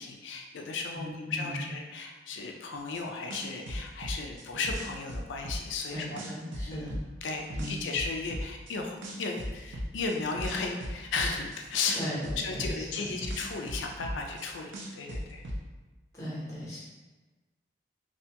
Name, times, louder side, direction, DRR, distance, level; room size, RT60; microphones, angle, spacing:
voice 1, 0.0-6.2 6.7-6.9 7.2-12.0 12.4-15.4, left 4 dB, 75° left, 2 dB, 0.4 m, -35 dB
voice 2, 1.0-1.7 5.9-7.0 7.5-7.9 11.9-13.1 16.1-16.8, equal, 15° left, -8 dB, 0.8 m, -38 dB
sound 1, 2.9-3.0 3.3-5.9 6.2-8.7 9.0-11.6 11.9-14.4 14.7-15.6, equal, 75° right, 0.4 m, -36 dB
2.6 x 2.2 x 2.8 m, 1.2 s
head